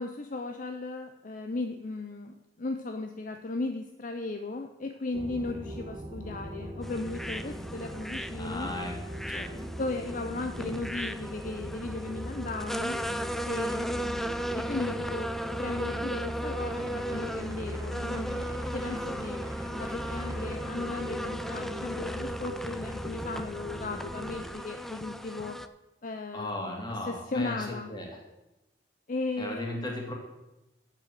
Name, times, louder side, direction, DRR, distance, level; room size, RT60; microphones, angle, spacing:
voice 1, 0.0-8.8 9.5-13.0 13.5-15.3 15.6-19.4 19.7-25.6 26.0-27.9 29.1-29.8, left 3 dB, 50° left, 5 dB, 0.6 m, -36 dB
sound 1, 5.1-24.5, equal, 15° right, 1.3 m, -39 dB
sound 2, 6.8-25.7, equal, ahead, 0.4 m, -37 dB
voice 2, 8.4-8.9 9.3-9.5 26.3-28.1 29.4-30.1, left 1 dB, 25° left, 0 dB, 2.5 m, -36 dB
7.9 x 7.7 x 7.7 m, 0.98 s
head